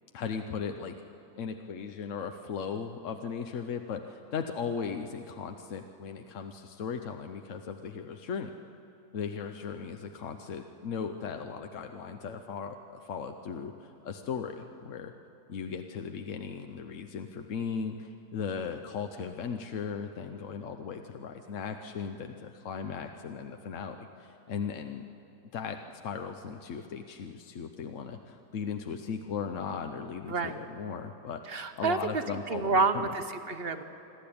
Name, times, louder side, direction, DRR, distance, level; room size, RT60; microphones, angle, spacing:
voice 1, 0.1-1.0 1.4-8.5 9.1-15.1 15.5-25.0 25.5-25.8 26.0-31.4 31.8-33.1, left 6 dB, 55° left, 6 dB, 0.9 m, -37 dB
voice 2, 31.4-33.8, right 3 dB, 45° right, 8 dB, 0.8 m, -29 dB
26.0 x 12.5 x 8.6 m, 3.0 s
omnidirectional pair, 1.9 m